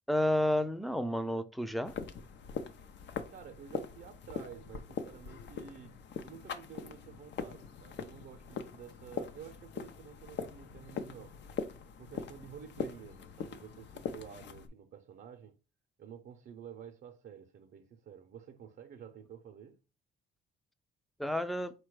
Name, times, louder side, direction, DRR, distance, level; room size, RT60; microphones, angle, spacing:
voice 1, 0.1-1.9 21.2-21.7, equal, ahead, 0.4 m, -31 dB
sound 1, 1.8-14.7, left 7 dB, 65° left, 0.6 m, -42 dB
voice 2, 3.3-11.4 12.0-15.6 16.0-19.8, right 8 dB, 55° right, 0.5 m, -51 dB
4.2 x 2.2 x 4.6 m
cardioid pair, 90°, 20 cm